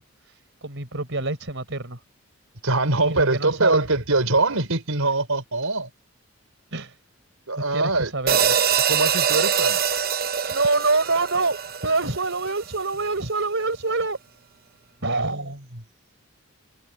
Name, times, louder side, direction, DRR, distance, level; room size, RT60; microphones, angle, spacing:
voice 1, 0.0-2.0 3.0-3.8 6.7-7.0 7.5-8.5 10.5-11.6 11.8-14.2 15.0-15.8, right 3 dB, 60° right, 4.4 m, -26 dB
voice 2, 2.6-5.9 7.5-8.1 8.9-10.0, right 2 dB, 80° right, 4.1 m, -23 dB
sound 1, 8.3-12.6, right 7 dB, 45° right, 1.0 m, -23 dB
head